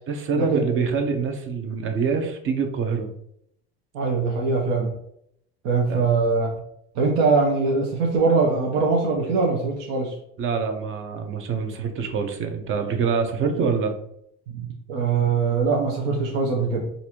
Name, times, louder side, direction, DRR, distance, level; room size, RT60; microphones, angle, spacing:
voice 1, 0.1-3.1 5.9-6.2 10.4-13.9, right 5 dB, 45° right, 5 dB, 0.7 m, -25 dB
voice 2, 3.9-4.9 5.6-6.5 6.9-10.1 14.5-16.9, right 4 dB, 70° right, -1 dB, 0.8 m, -22 dB
4.0 x 2.5 x 2.9 m, 0.72 s
supercardioid pair, 95°, 30 cm